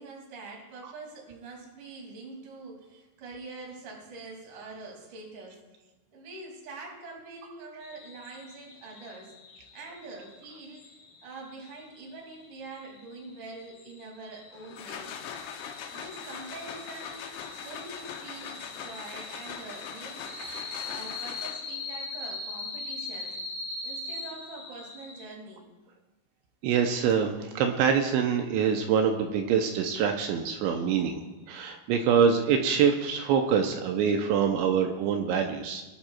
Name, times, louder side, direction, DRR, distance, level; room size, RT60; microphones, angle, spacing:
voice 1, 0.0-5.6 6.1-9.3 9.7-10.8 11.2-15.2 15.9-20.3 20.9-23.3 23.8-25.7, right 3 dB, 45° right, -1 dB, 3.7 m, -44 dB
sound 1, 7.8-25.2, left 3 dB, 30° left, 3.3 m, -42 dB
sound 2, 14.5-21.9, left 8 dB, 85° left, 2.4 m, -41 dB
voice 2, 26.6-35.8, right 7 dB, 85° right, 4 dB, 2.8 m, -25 dB
21.5 x 12.0 x 2.4 m, 1.1 s
omnidirectional pair, 5.9 m